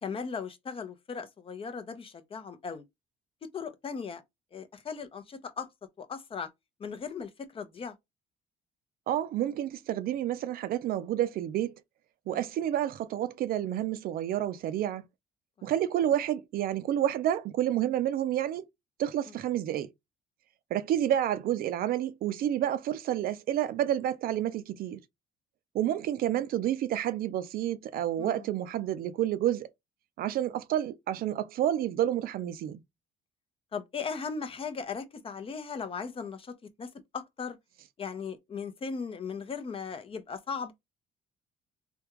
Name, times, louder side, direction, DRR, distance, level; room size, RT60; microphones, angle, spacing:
voice 1, 0.0-2.8 3.4-4.2 4.5-5.7 6.0-6.5 6.8-7.9 12.3-12.4 15.6-15.7 28.2-28.4 33.7-37.6 38.0-40.7, left 5 dB, 35° left, 0.6 m, -38 dB
voice 2, 9.1-11.7 12.3-15.0 15.6-18.6 19.0-19.9 20.7-25.0 25.7-29.7 30.2-32.8, right 11 dB, 60° right, 0.4 m, -29 dB
3.4 x 2.3 x 3.0 m
cardioid pair, 110°, 17 cm